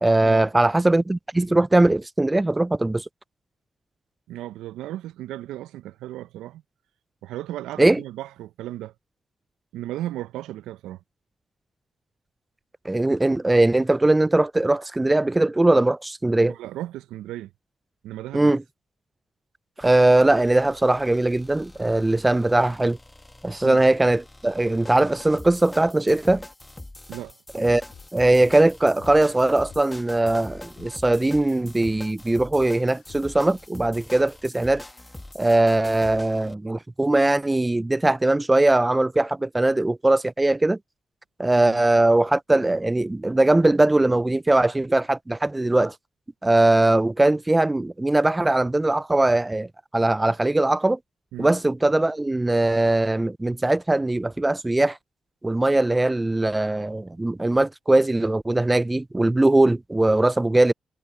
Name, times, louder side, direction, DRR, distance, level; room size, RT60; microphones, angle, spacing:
voice 1, 0.0-3.1 7.8-8.0 12.8-16.5 18.3-18.6 19.8-23.0 23.4-26.4 27.5-27.8 28.1-34.8 35.3-40.8 41.4-45.9 46.4-49.7 49.9-51.0 51.4-55.0 55.4-60.7, right 2 dB, 20° right, 0.5 m, -20 dB
voice 2, 4.3-6.6 7.2-8.9 9.7-11.0 16.5-17.5 18.0-18.5 23.6-23.9 27.1-27.3 41.5-41.8 51.3-51.6, right 14 dB, 75° right, 1.0 m, -35 dB
sound 1, 19.8-36.6, left 1 dB, 15° left, 1.5 m, -44 dB
sound 2, 27.9-28.1 28.4-31.0 31.3-33.5, left 9 dB, 65° left, 4.8 m, -47 dB
hypercardioid pair, 40°, 0 cm